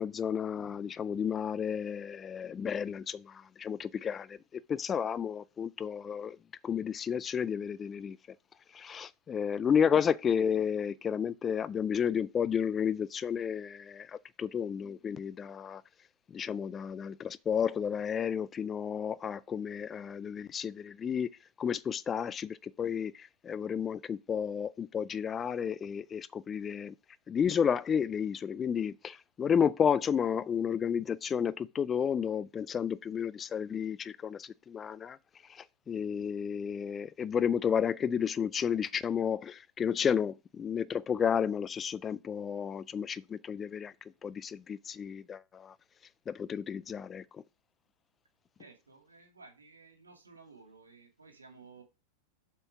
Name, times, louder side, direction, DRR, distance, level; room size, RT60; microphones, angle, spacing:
voice 1, 0.0-6.4 6.6-8.4 8.7-15.8 16.3-21.3 21.6-27.0 27.3-35.2 35.4-45.8 46.3-47.4, left 7 dB, 20° left, 0.4 m, -32 dB
voice 2, 48.6-51.8, right 4 dB, 75° right, 2.2 m, -55 dB
7.8 x 4.4 x 6.0 m
figure-of-eight pair, 90°, 0 cm